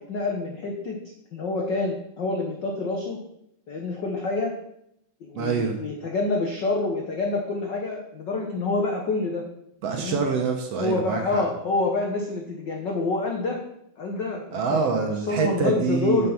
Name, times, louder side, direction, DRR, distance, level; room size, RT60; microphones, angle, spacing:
voice 1, 0.1-1.0 1.3-3.2 3.7-4.5 5.2-9.4 9.9-10.2 10.8-13.6 14.0-14.8 15.3-16.3, left 3 dB, 70° left, 1 dB, 1.0 m, -27 dB
voice 2, 5.3-5.8 9.8-11.4 14.5-16.3, right 5 dB, 65° right, 4 dB, 1.8 m, -25 dB
9.1 x 6.6 x 5.9 m, 0.77 s
omnidirectional pair, 3.6 m